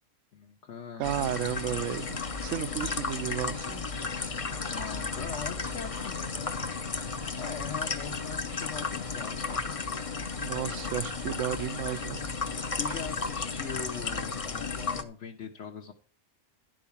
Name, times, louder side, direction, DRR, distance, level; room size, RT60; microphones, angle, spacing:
voice 1, 0.3-1.1 4.3-6.9 7.4-9.7 12.8-15.9, left 6 dB, 65° left, 1.2 m, -41 dB
sound 1, 1.0-15.0, left 4 dB, 35° left, 0.7 m, -34 dB
voice 2, 1.0-3.8 10.4-12.2, right 12 dB, 80° right, 1.0 m, -33 dB
11.5 x 4.6 x 7.0 m
omnidirectional pair, 1.3 m